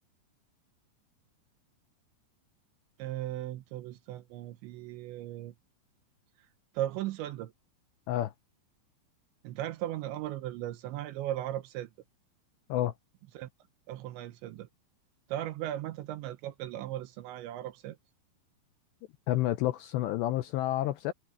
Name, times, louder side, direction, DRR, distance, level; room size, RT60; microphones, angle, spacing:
voice 1, 3.0-5.5 6.7-7.5 9.4-11.9 13.3-13.5 13.9-14.7 15.3-18.0, right 13 dB, 80° right, 2.9 m, -37 dB
voice 2, 19.3-21.1, left 14 dB, 90° left, 2.5 m, -29 dB
omnidirectional pair, 5.7 m